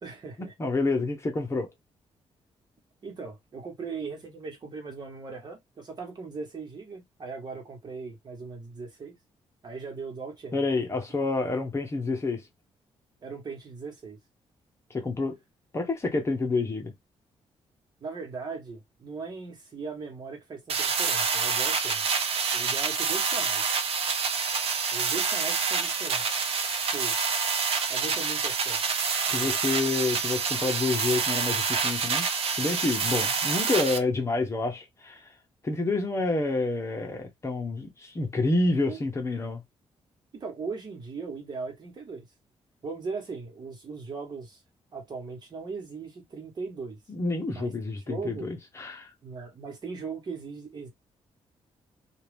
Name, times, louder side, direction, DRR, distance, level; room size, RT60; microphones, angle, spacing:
voice 1, 0.0-0.5 3.0-9.2 9.6-10.6 13.2-14.2 18.0-22.0 22.5-23.6 24.9-26.2 26.8-27.1 27.9-28.8 29.3-29.5 38.9-39.0 40.3-42.2 42.8-44.6 44.9-47.0 47.5-47.7 48.1-48.5 49.2-50.9, right 4 dB, 40° right, 1.5 m, -38 dB
voice 2, 0.6-1.7 10.5-12.4 14.9-15.4 15.7-16.9 29.3-32.3 32.5-35.2 35.6-39.6 47.1-49.1, left 3 dB, 25° left, 1.0 m, -28 dB
sound 1, 20.7-34.0, right 5 dB, 60° right, 0.8 m, -27 dB
2.7 x 2.5 x 3.4 m
cardioid pair, 130°, 11 cm